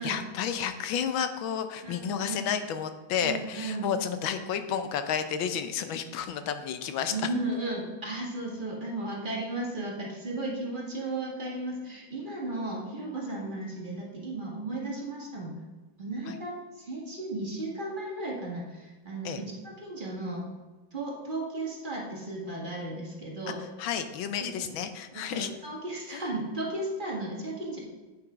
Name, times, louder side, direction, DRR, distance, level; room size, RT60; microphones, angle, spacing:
voice 1, 0.0-7.1 16.3-16.4 19.2-19.4 23.8-25.5, left 8 dB, 80° left, 9 dB, 1.5 m, -31 dB
voice 2, 1.8-2.4 3.2-3.9 7.1-15.5 16.0-20.5 20.9-23.6 24.4-24.7 25.1-27.8, right 2 dB, 25° right, -2 dB, 1.9 m, -35 dB
8.3 x 7.0 x 5.0 m, 1.2 s
omnidirectional pair, 2.2 m